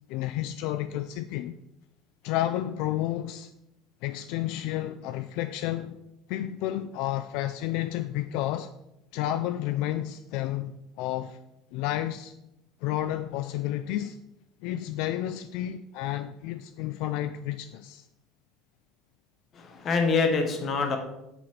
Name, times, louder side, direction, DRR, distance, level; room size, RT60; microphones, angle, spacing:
voice 1, 0.1-1.6 2.2-3.5 4.0-6.0 6.3-8.7 9.1-10.7 11.0-11.4 11.7-12.3 12.8-14.2 14.6-18.0, left 13 dB, 70° left, 0.3 m, -31 dB
voice 2, 19.5-21.0, left 4 dB, 35° left, 1.3 m, -25 dB
8.9 x 4.1 x 4.5 m
cardioid pair, 155°, 0 cm